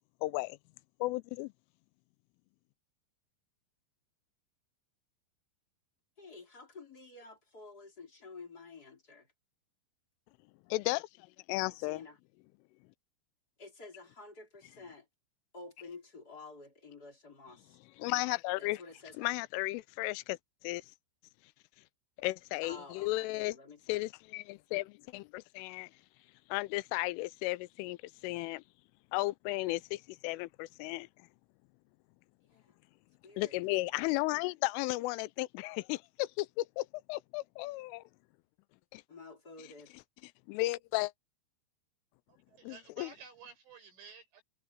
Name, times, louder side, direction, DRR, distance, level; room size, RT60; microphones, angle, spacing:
voice 1, 0.2-0.6 1.0-1.5 10.7-11.1 11.5-12.0 18.0-18.8 19.2-20.4 20.6-20.8 22.2-23.6 23.9-25.9 26.5-28.0 28.2-28.6 29.1-31.1 33.4-38.0 38.9-39.0 40.2-41.1 42.6-43.1, left 21 dB, 90° left, 3.2 m, -34 dB
voice 2, 6.2-9.3 11.9-12.2 13.6-15.1 15.5-17.8 18.6-19.4 22.6-24.0 32.5-32.7 33.2-33.6 39.1-39.9, left 3 dB, 20° left, 3.5 m, -51 dB
voice 3, 42.3-44.4, right 6 dB, 80° right, 9.5 m, -53 dB
omnidirectional pair, 5.6 m